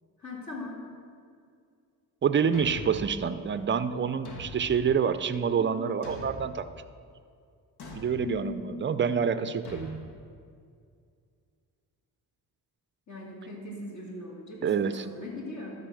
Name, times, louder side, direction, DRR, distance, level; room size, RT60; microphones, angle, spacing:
voice 1, 0.2-0.8 5.5-5.9 8.2-8.8 13.1-15.7, left 2 dB, 45° left, -3 dB, 2.6 m, -40 dB
voice 2, 2.2-6.7 7.9-10.0 14.6-15.1, right 7 dB, 30° right, 12 dB, 0.5 m, -27 dB
Thump thud, 2.5-3.1 4.2-4.8 6.0-6.6 7.8-8.2 9.6-10.0, left 1 dB, 70° left, 1.5 m, -42 dB
12.5 x 4.1 x 6.4 m, 2.2 s
cardioid pair, 75°, 41 cm